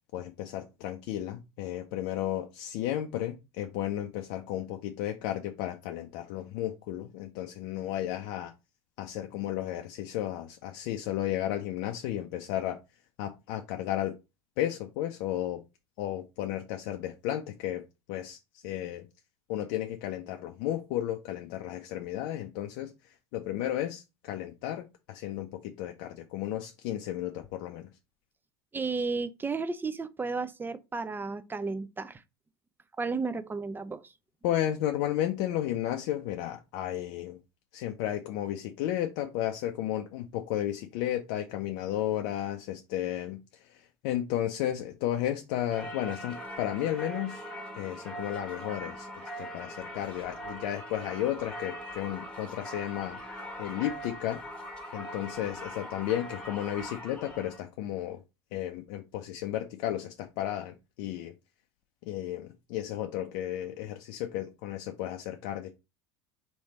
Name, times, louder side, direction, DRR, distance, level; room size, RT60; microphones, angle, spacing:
voice 1, 0.1-8.5 9.0-12.8 13.2-14.2 14.6-15.6 16.0-17.8 18.1-19.0 19.5-27.9 34.4-37.4 37.7-47.4 47.7-53.2 53.6-54.4 54.9-58.2 58.5-61.3 62.0-65.7, left 12 dB, 60° left, 0.5 m, -33 dB
voice 2, 28.7-32.2 33.0-34.1, right 4 dB, 15° right, 0.5 m, -33 dB
Singing / Church bell, 45.7-57.6, equal, 5° left, 1.2 m, -41 dB
3.3 x 3.1 x 4.1 m
hypercardioid pair, 75°, 14 cm